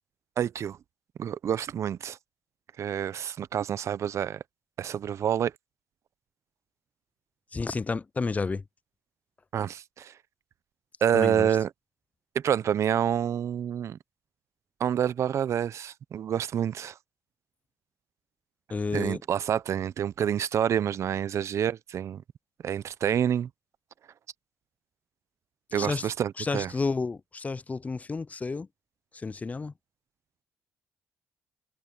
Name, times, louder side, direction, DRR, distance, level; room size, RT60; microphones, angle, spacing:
voice 1, 0.4-0.8 1.2-2.2 2.8-4.4 4.8-5.5 9.5-10.1 11.0-11.7 12.3-14.0 14.8-16.9 18.9-22.2 22.6-23.5 25.7-26.7, right 9 dB, 60° right, 0.6 m, -28 dB
voice 2, 7.5-8.6 11.1-11.6 18.7-19.2 25.7-28.7 29.1-29.7, left 4 dB, 25° left, 0.4 m, -31 dB
supercardioid pair, 65°, 5 cm